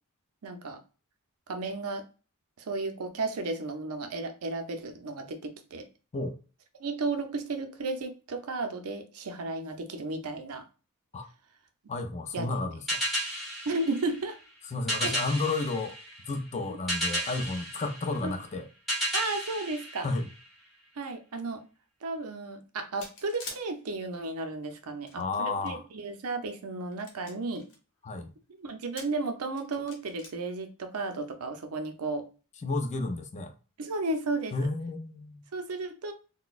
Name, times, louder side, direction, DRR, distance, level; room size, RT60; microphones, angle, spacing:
voice 1, 0.4-0.8 1.5-2.0 2.7-5.9 6.8-10.6 12.3-12.5 13.7-14.4 15.0-15.2 18.2-18.3 19.1-20.1 21.0-21.6 22.0-27.7 28.6-32.3 33.8-34.5 35.5-36.1, right 3 dB, 70° right, 0.6 m, -33 dB
voice 2, 11.9-13.0 14.7-16.0 16.3-18.7 20.0-20.3 25.2-25.8 28.0-28.3 32.6-33.5 34.5-35.4, left 3 dB, 30° left, 0.4 m, -32 dB
sound 1, 12.9-20.7, equal, ahead, 1.2 m, -34 dB
sound 2, 23.0-23.6 24.7-25.7 26.3-26.4 26.9-27.8 28.7-29.2 29.6-30.3, left 3 dB, 60° left, 0.9 m, -44 dB
3.9 x 2.2 x 2.4 m
head